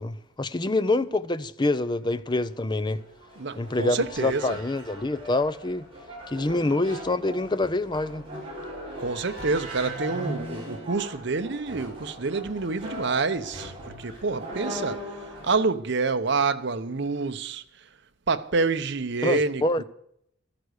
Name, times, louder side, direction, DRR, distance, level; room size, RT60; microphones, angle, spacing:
voice 1, 0.0-3.0 3.6-5.9 6.3-8.2 19.2-19.8, left 2 dB, 25° left, 0.6 m, -26 dB
sound 1, 2.1-15.6, equal, 30° right, 7.4 m, -39 dB
voice 2, 3.4-4.6 9.0-17.6 18.3-19.8, right 4 dB, 60° right, 0.8 m, -27 dB
14.5 x 13.0 x 6.6 m
head